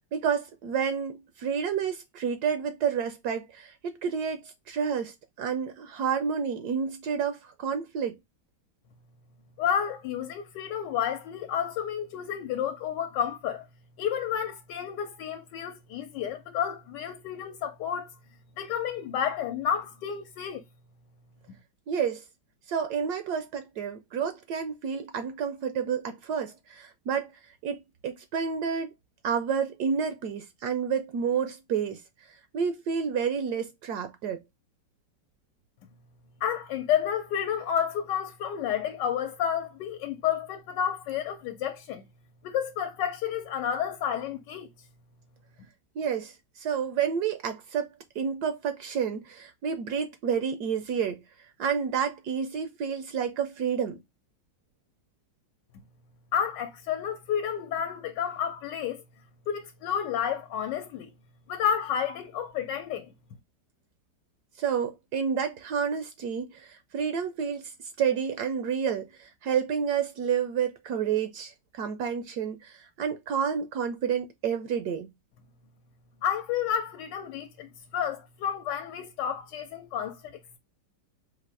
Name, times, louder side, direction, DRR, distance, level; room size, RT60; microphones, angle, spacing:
voice 1, 0.1-8.2 21.9-22.2 22.7-27.3 27.6-28.9 29.2-32.0 32.3-34.4 46.0-47.9 48.2-51.2 51.6-54.0 64.6-67.7 68.0-75.1, right 7 dB, 70° right, 1.1 m, -30 dB
voice 2, 9.6-13.7 14.0-18.1 18.6-20.6 36.4-42.1 42.4-44.7 56.3-59.0 59.5-61.1 61.5-63.1 76.2-80.6, left 9 dB, 75° left, 1.3 m, -30 dB
4.2 x 2.5 x 4.6 m
omnidirectional pair, 1.9 m